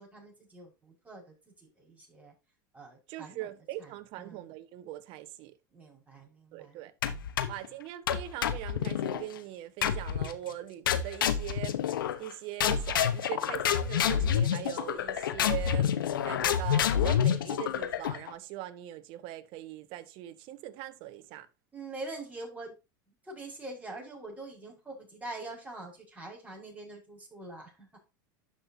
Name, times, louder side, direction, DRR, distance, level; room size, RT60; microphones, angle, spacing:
voice 1, 0.0-2.3 2.7-3.5 3.8-4.4 5.7-6.8 7.1-7.5 21.7-22.7 23.2-28.0, right 2 dB, 15° right, 5.7 m, -45 dB
voice 2, 3.1-5.5 6.5-6.9 7.5-15.9 16.2-21.5, right 14 dB, 55° right, 1.2 m, -41 dB
sound 1, 7.0-7.7 8.1-9.2 9.8-10.4 10.9-12.3 12.6-18.3, left 9 dB, 90° left, 1.1 m, -28 dB
12.0 x 5.9 x 2.8 m
hypercardioid pair, 105°, 11 cm